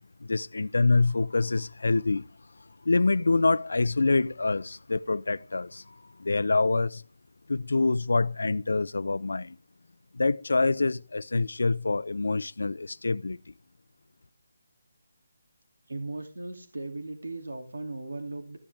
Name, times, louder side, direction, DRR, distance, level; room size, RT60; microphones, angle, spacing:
voice 1, 0.2-2.3 2.8-7.0 7.5-9.6 10.1-13.4, left 3 dB, 85° left, 0.5 m, -26 dB
voice 2, 15.9-18.6, right 2 dB, 90° right, 2.7 m, -37 dB
15.0 x 11.5 x 3.5 m
hypercardioid pair, 175°, 0 cm